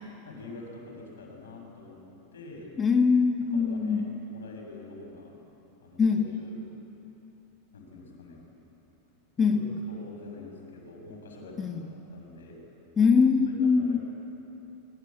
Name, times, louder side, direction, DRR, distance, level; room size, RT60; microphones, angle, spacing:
voice 1, 0.2-2.0 2.3-2.7 3.4-5.4 5.8-6.6 7.7-8.4 9.5-9.6 9.9-12.6 13.5-14.0, left 2 dB, 75° left, 1 dB, 6.7 m, -46 dB
voice 2, 2.8-4.1 6.0-6.3 9.4-9.7 11.6-11.7 13.0-14.0, left 5 dB, 25° left, 4 dB, 1.4 m, -23 dB
25.0 x 21.5 x 8.8 m, 3.0 s
hypercardioid pair, 95°, 0 cm